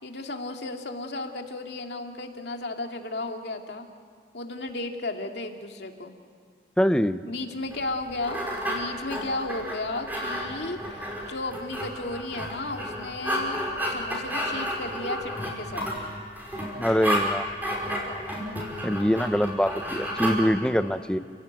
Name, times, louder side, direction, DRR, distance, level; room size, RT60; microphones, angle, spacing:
voice 1, 0.0-3.9 4.3-6.1 7.3-15.9, left 2 dB, 70° left, 3 dB, 2.2 m, -34 dB
voice 2, 6.8-7.2 16.8-17.5 18.8-21.2, equal, 5° left, 11 dB, 0.7 m, -24 dB
sound 1, 7.7-20.4, equal, 10° right, 5.5 m, -32 dB
30.0 x 17.0 x 9.2 m, 2.1 s
head